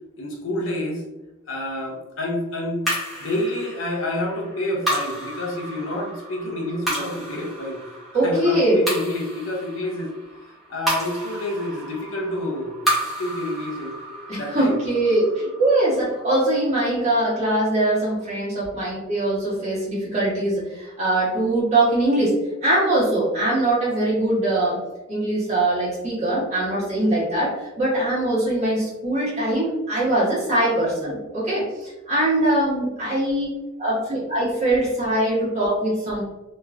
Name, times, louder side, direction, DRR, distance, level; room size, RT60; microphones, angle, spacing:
voice 1, 0.2-1.0 1.5-2.8 3.2-7.8 8.1-10.1 10.7-13.9 14.4-14.8, left 1 dB, 70° left, 0 dB, 0.6 m, -28 dB
sound 1, 2.9-17.4, right 1 dB, ahead, 0.8 m, -32 dB
voice 2, 8.1-8.8 14.2-22.3 22.6-24.8 25.1-33.5 33.8-36.2, right 1 dB, 35° right, -7 dB, 1.1 m, -22 dB
3.1 x 2.2 x 2.3 m, 1.0 s
head